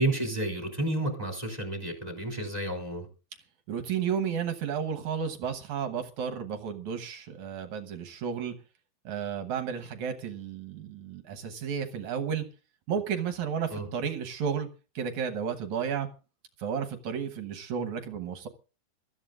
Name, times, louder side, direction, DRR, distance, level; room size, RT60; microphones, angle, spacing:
voice 1, 0.0-3.1 13.7-13.9, right 1 dB, 10° right, 2 dB, 2.6 m, -30 dB
voice 2, 3.7-8.5 9.1-12.4 12.9-14.7 15.0-16.1 16.6-18.5, right 7 dB, 65° right, 6 dB, 2.2 m, -32 dB
22.5 x 13.5 x 2.5 m, 0.34 s
omnidirectional pair, 4.3 m